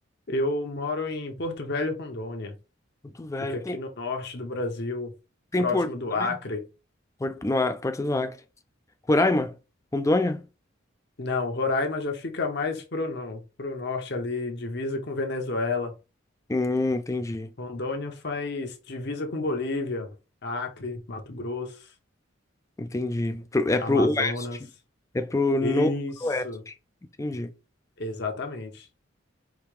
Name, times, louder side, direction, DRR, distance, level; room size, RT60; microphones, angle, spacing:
voice 1, 0.3-2.6 3.5-5.1 5.6-6.7 11.2-15.9 17.6-20.1 20.4-21.7 23.8-24.6 25.6-26.2 26.4-26.6 28.0-28.9, left 3 dB, 55° left, 0.9 m, -30 dB
voice 2, 3.2-3.8 5.5-5.9 6.2-6.4 7.2-8.4 9.1-9.5 9.9-10.4 16.5-17.5 22.8-24.5 25.1-25.9 26.2-26.7 27.2-27.5, left 2 dB, 15° left, 0.4 m, -25 dB
4.9 x 2.8 x 3.2 m
head